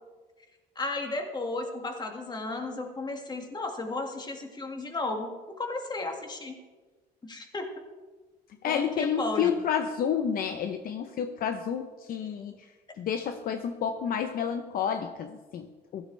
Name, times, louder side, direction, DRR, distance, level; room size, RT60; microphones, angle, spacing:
voice 1, 0.8-6.5 7.2-7.7 8.7-9.5, left 2 dB, 25° left, 4 dB, 1.9 m, -34 dB
voice 2, 8.6-12.5 13.0-16.1, left 7 dB, 60° left, 7 dB, 0.8 m, -30 dB
15.5 x 13.0 x 3.3 m, 1.3 s
cardioid pair, 110°, 17 cm